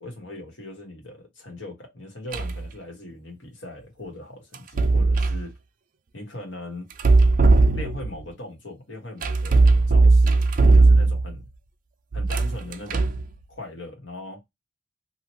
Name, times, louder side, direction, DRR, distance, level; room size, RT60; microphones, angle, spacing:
voice 1, 0.0-5.5 6.1-6.9 7.7-10.4 10.7-11.4 12.1-13.1 13.5-14.4, left 2 dB, 70° left, 1.4 m, -39 dB
sound 1, 2.3-2.6 4.5-5.4 6.9-8.2 9.2-11.4 12.1-13.3, right 3 dB, 45° right, 0.4 m, -18 dB
2.8 x 2.4 x 2.9 m
head